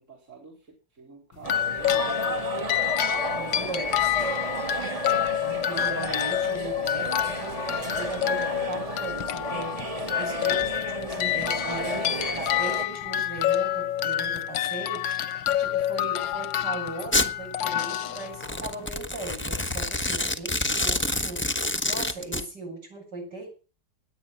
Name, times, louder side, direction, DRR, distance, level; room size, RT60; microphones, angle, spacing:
voice 1, 0.0-2.4 3.1-3.8, right 4 dB, 40° right, 0 dB, 4.3 m, -47 dB
sound 1, 1.4-18.9, left 11 dB, 90° left, 1.6 m, -28 dB
sound 2, 1.4-12.9, right 1 dB, 20° right, 1.3 m, -33 dB
voice 2, 3.4-4.2 5.4-9.8 10.2-15.1 15.6-23.5, right 2 dB, 65° right, 1 dB, 8.4 m, -38 dB
Domestic sounds home sounds, 17.1-17.3 18.3-22.4, left 2 dB, 10° left, 0.9 m, -27 dB
20.5 x 9.2 x 5.9 m, 0.36 s
omnidirectional pair, 2.0 m